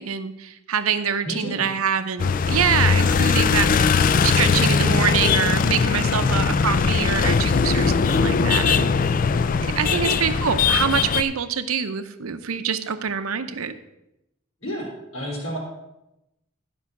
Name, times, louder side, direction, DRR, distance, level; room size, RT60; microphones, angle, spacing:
voice 1, 0.0-3.9 4.2-8.9 9.5-13.7, right 7 dB, 90° right, 10 dB, 0.7 m, -25 dB
voice 2, 1.2-1.6 6.0-6.5 9.9-10.1 14.6-15.6, equal, 85° left, -4 dB, 3.3 m, -30 dB
sound 1, 2.2-11.2, left 5 dB, 40° left, 0.4 m, -20 dB
11.5 x 5.5 x 6.0 m, 0.91 s
head